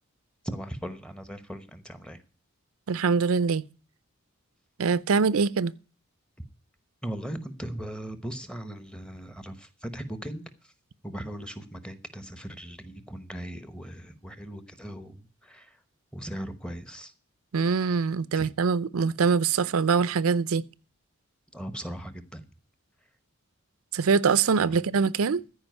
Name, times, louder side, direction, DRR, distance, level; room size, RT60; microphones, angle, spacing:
voice 1, 0.4-2.2 7.0-10.4 11.0-15.8 16.1-17.1 18.3-18.5 21.5-22.4 24.7-24.8, right 1 dB, 5° left, 0.9 m, -38 dB
voice 2, 2.9-3.7 4.8-5.7 17.5-20.7 23.9-25.4, right 5 dB, 80° right, 0.5 m, -23 dB
14.0 x 5.0 x 9.2 m
head